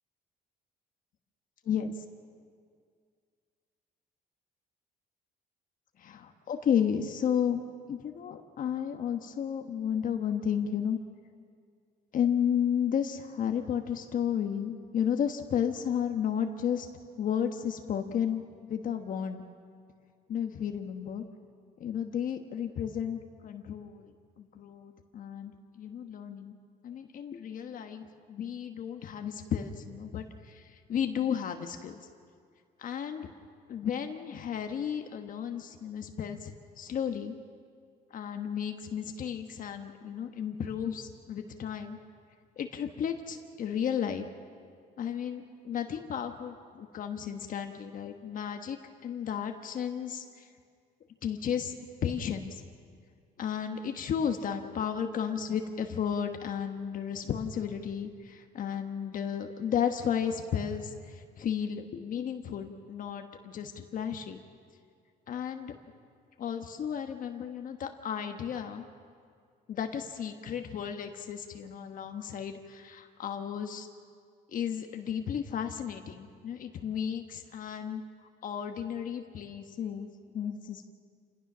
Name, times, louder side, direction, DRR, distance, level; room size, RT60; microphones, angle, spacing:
voice 1, 1.6-2.0 6.0-7.6 7.9-11.0 12.1-16.9 17.2-18.4 18.7-19.4 20.3-21.2 21.8-26.6 26.8-32.0 32.8-33.3 33.7-37.3 38.1-42.0 42.6-44.3 45.0-48.8 49.0-50.5 51.2-51.8 52.0-52.6 53.4-64.4 65.3-65.8 66.4-68.9 69.7-73.9 74.5-78.0 78.4-80.9, left 8 dB, 55° left, 5 dB, 1.3 m, -33 dB
28.0 x 17.5 x 6.2 m, 2.2 s
cardioid pair, 110°, 17 cm